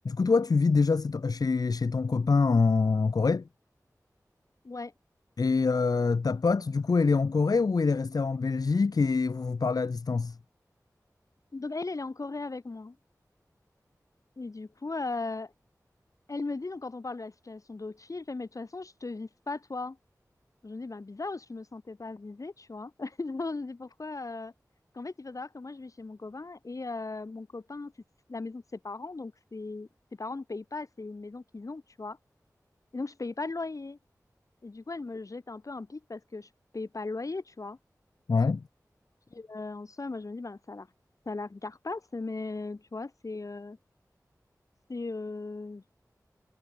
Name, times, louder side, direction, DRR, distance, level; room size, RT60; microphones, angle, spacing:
voice 1, 0.0-3.4 5.4-10.4 38.3-38.6, left 4 dB, 70° left, 0.9 m, -25 dB
voice 2, 11.5-13.0 14.4-15.5 16.3-20.0 20.6-24.5 24.9-27.9 28.3-29.9 30.2-32.2 32.9-34.0 34.6-37.8 39.3-40.9 41.3-43.8 44.9-45.8, left 3 dB, 55° left, 2.5 m, -37 dB
wide cardioid pair, 55°, 7 cm